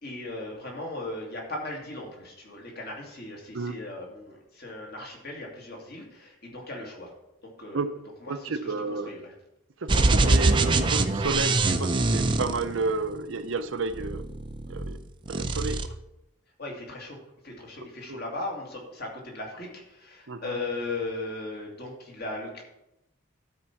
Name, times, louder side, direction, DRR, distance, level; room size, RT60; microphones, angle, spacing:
voice 1, 0.0-7.1 7.4-7.9 8.2-9.3 16.6-17.2 17.4-22.6, left 2 dB, 50° left, -1 dB, 2.2 m, -37 dB
voice 2, 8.3-9.1 9.8-14.2 14.7-15.0 15.3-15.9 18.1-18.2 20.3-20.5, right 3 dB, 70° right, 10 dB, 0.7 m, -31 dB
sound 1, 9.9-13.2 13.9-15.0 15.3-15.9, right 2 dB, 25° right, 0.5 m, -24 dB
12.5 x 4.5 x 5.9 m, 0.89 s
head